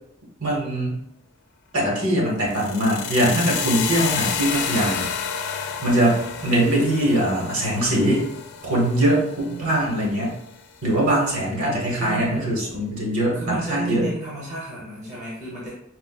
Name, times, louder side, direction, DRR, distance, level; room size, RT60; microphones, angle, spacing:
voice 1, 0.4-1.0 1.7-5.1 5.4-8.3 8.6-10.4 10.8-14.1, right 1 dB, 70° right, -3 dB, 1.1 m, -22 dB
sound 1, 2.4-10.5, left 7 dB, 55° left, 0.3 m, -30 dB
voice 2, 8.8-9.8 12.0-12.6 13.3-15.7, right 1 dB, 30° right, -6 dB, 0.8 m, -33 dB
4.3 x 2.0 x 2.3 m, 0.80 s
head